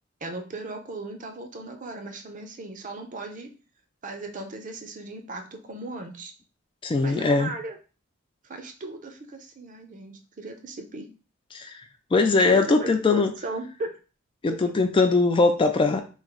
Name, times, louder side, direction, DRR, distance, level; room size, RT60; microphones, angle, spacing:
voice 1, 0.2-3.5 4.0-6.3 7.0-7.8 8.4-11.1 12.4-13.9 14.7-14.8, right 2 dB, 40° right, 0.6 m, -37 dB
voice 2, 6.8-7.5 11.5-11.8 12.1-13.3 14.4-16.0, left 3 dB, 25° left, 0.3 m, -21 dB
3.1 x 2.5 x 3.7 m
head